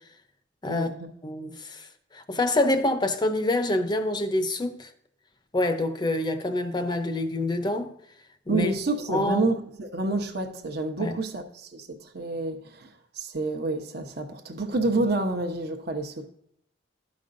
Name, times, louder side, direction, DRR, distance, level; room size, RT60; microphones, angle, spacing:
voice 1, 0.7-1.1 8.5-16.3, right 2 dB, 55° right, 0.9 m, -29 dB
voice 2, 1.2-1.9 2.1-4.9 5.5-7.9 8.5-8.7 9.1-9.4 11.0-11.2, left 1 dB, 20° left, 0.6 m, -26 dB
13.0 x 5.3 x 2.6 m
head